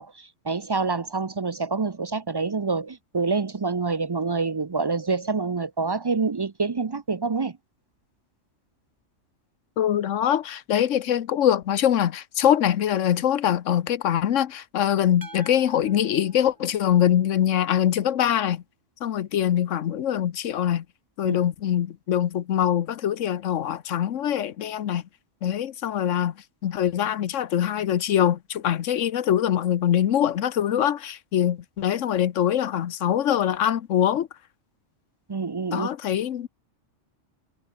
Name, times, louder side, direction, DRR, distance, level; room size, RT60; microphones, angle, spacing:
voice 1, 0.0-7.6 21.2-21.4 35.3-35.9, right 4 dB, 35° right, 0.4 m, -27 dB
voice 2, 9.8-18.6 19.0-20.8 21.2-25.0 25.4-26.3 26.6-34.3 35.7-36.5, left 10 dB, 80° left, 1.2 m, -23 dB
sound 1, 15.2-17.5, right 2 dB, 15° right, 1.2 m, -48 dB
omnidirectional pair, 1.3 m